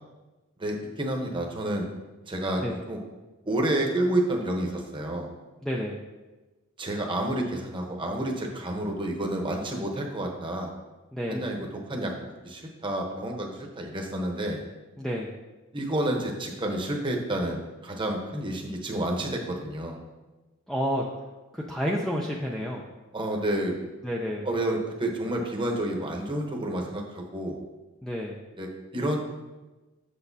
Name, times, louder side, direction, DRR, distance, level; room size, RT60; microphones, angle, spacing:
voice 1, 0.6-1.9 2.3-2.6 2.9-3.0 3.5-5.3 6.8-10.7 11.3-11.6 11.9-14.6 15.7-20.0 23.1-23.7 24.4-27.6 28.6-29.2, right 1 dB, 20° right, 1 dB, 0.9 m, -29 dB
voice 2, 5.6-6.0 11.1-11.5 15.0-15.3 20.7-21.0 21.5-22.8 24.0-24.5 28.0-28.4, equal, ahead, -2 dB, 0.4 m, -30 dB
8.1 x 6.4 x 2.7 m, 1.2 s
head